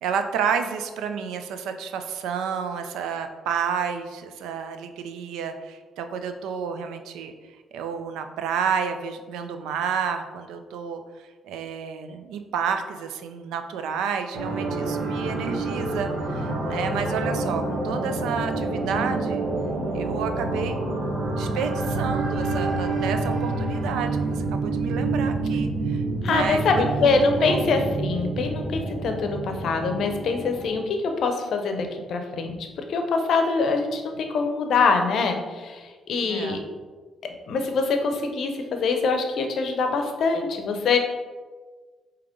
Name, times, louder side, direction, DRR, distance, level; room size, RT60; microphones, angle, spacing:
voice 1, 0.0-7.3 7.7-19.4 19.9-20.8 21.4-27.1 27.4-27.7 36.2-36.6, right 6 dB, 90° right, 7 dB, 0.4 m, -30 dB
sound 1, 14.3-30.8, right 2 dB, 60° right, 1.0 m, -27 dB
voice 2, 26.2-32.6 32.9-36.6 37.5-41.0, left 4 dB, 65° left, 5 dB, 0.6 m, -24 dB
5.0 x 2.9 x 3.6 m, 1.4 s
cardioid pair, 90°, 0 cm